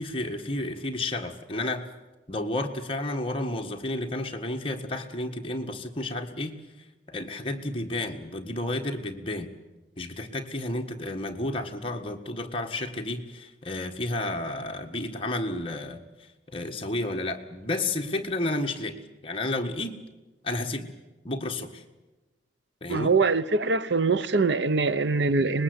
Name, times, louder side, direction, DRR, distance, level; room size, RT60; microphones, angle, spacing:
voice 1, 0.0-1.8 2.3-6.5 7.1-9.5 10.0-16.0 16.5-20.0 20.4-20.9 21.2-21.8 22.8-23.1, left 2 dB, 30° left, 1.7 m, -31 dB
voice 2, 22.9-25.6, right 4 dB, 70° right, 0.7 m, -23 dB
25.0 x 20.5 x 8.1 m
head